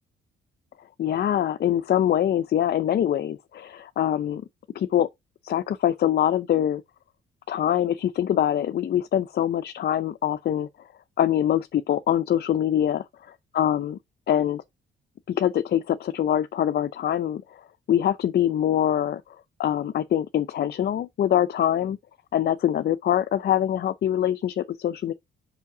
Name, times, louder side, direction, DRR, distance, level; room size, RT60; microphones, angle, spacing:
voice 1, 1.0-4.4 4.7-5.1 5.4-6.8 7.5-10.7 11.2-13.0 13.5-14.0 14.3-14.6 15.3-17.6 17.9-19.2 19.6-22.0 22.3-25.1, left 10 dB, 55° left, 0.6 m, -24 dB
5.8 x 5.7 x 4.8 m
cardioid pair, 90°, 20 cm